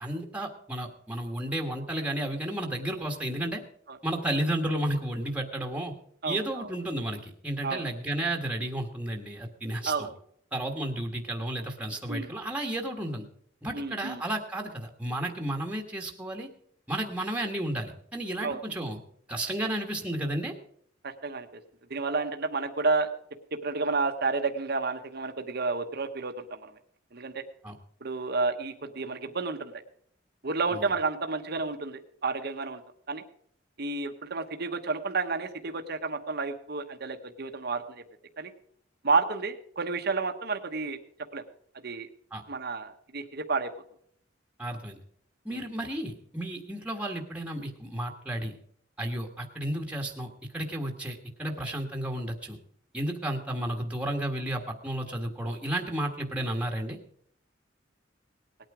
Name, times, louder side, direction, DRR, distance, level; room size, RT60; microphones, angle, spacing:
voice 1, 0.0-3.6 4.0-5.9 6.2-10.1 10.5-13.3 13.6-16.5 16.9-19.0 19.3-20.5 27.6-27.8 30.7-30.9 42.3-42.4 44.6-45.0 45.4-48.5 49.0-50.3 50.5-52.6 52.9-57.0, right 1 dB, 5° right, 3 dB, 1.5 m, -32 dB
voice 2, 6.2-6.7 7.6-7.9 9.8-10.1 12.1-12.3 13.7-14.2 18.4-18.6 21.0-21.6 21.9-23.1 23.6-26.7 27.1-27.4 28.0-29.7 30.4-32.8 33.1-33.2 33.8-38.0 38.4-38.5 39.0-41.0 41.3-41.4 41.8-42.1 42.5-43.7 45.5-45.6, right 4 dB, 55° right, 6 dB, 1.1 m, -30 dB
18.5 x 9.1 x 4.9 m, 0.64 s
head